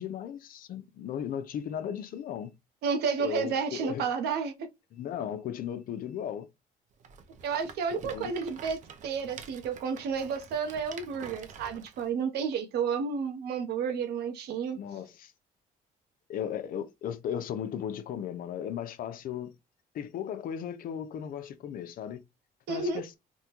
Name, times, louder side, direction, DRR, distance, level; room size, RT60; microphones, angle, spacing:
voice 1, 0.0-2.5 3.2-4.1 4.9-6.5 8.0-8.3 14.8-15.3 16.3-19.5 19.9-22.2 22.7-23.2, left 9 dB, 55° left, 0.5 m, -36 dB
voice 2, 2.8-4.7 7.4-14.8 22.7-23.0, right 6 dB, 75° right, 0.8 m, -31 dB
Rattle, 7.0-12.1, right 6 dB, 45° right, 0.5 m, -48 dB
3.6 x 2.2 x 2.9 m
cardioid pair, 110°, 17 cm